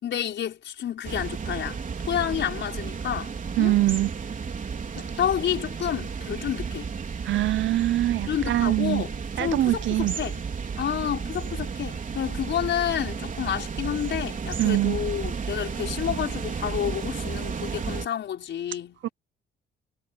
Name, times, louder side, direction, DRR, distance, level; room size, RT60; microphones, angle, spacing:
voice 1, 0.0-3.7 5.0-6.9 8.3-9.1 9.4-10.4 10.8-19.0, left 10 dB, 65° left, 5.8 m, -30 dB
sound 1, 1.0-18.1, right 5 dB, 40° right, 4.3 m, -33 dB
voice 2, 3.6-4.1 7.2-9.0 9.4-10.1 14.6-15.0 19.0-19.1, right 15 dB, 70° right, 0.7 m, -23 dB
cardioid pair, 90°, 20 cm